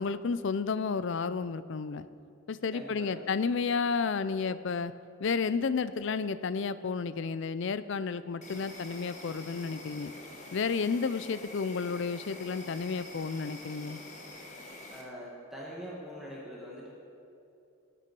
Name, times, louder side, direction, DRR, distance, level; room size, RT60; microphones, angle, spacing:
voice 1, 0.0-2.1 2.5-4.9 5.2-10.1 10.5-14.0, left 5 dB, 55° left, 14 dB, 0.4 m, -31 dB
voice 2, 2.7-3.5 8.5-8.7 14.9-16.9, equal, ahead, -6 dB, 1.7 m, -44 dB
Insect, 8.4-15.0, left 2 dB, 35° left, 1.3 m, -46 dB
19.0 x 9.0 x 4.7 m, 2.7 s
head